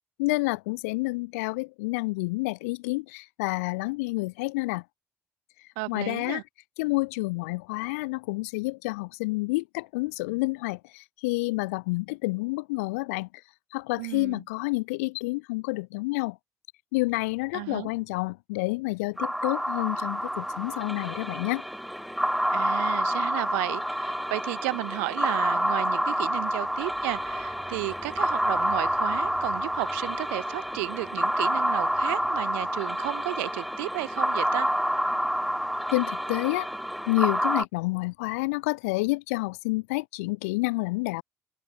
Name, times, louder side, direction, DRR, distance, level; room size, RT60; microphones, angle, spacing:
voice 1, 0.2-4.8 5.9-6.4 6.8-13.3 13.7-16.4 16.9-21.6 35.9-36.7 37.1-41.2, left 24 dB, 80° left, 0.4 m, -29 dB
voice 2, 5.8-6.4 14.0-14.4 17.5-17.9 22.5-34.7, right 36 dB, 80° right, 0.6 m, -33 dB
sound 1, 19.2-37.7, equal, ahead, 1.0 m, -28 dB
sound 2, 26.2-36.4 37.2-37.3, right 3 dB, 20° right, 2.9 m, -55 dB
open air
hypercardioid pair, 55°, 8 cm